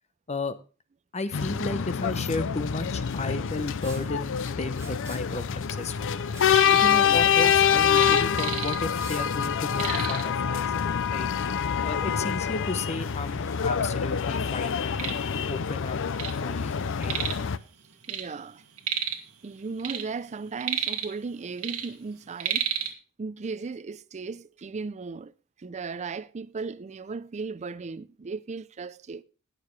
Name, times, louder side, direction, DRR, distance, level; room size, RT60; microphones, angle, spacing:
voice 1, 1.1-6.1 6.7-11.3 11.8-16.0 16.4-17.2, left 3 dB, 30° left, 0.8 m, -34 dB
sound 1, 1.3-17.6, left 8 dB, 60° left, 0.5 m, -26 dB
Liquid, 3.8-4.1 4.7-5.3 6.3-6.5 6.9-7.0 7.3-7.6 9.0-9.2, right 4 dB, 15° right, 2.6 m, -45 dB
sound 2, 6.3-7.0 7.3-9.1 9.4-9.5 9.7-10.4 11.2-11.3 11.8-11.9 12.6-12.7 13.0-13.9 14.4-16.4 16.7-17.5 17.8-19.3 19.7-21.3 21.6-22.9, right 9 dB, 80° right, 1.7 m, -32 dB
voice 2, 18.1-18.6 19.4-22.7 23.2-25.3 25.6-29.2, right 4 dB, 30° right, 0.4 m, -36 dB
19.5 x 6.6 x 3.2 m
head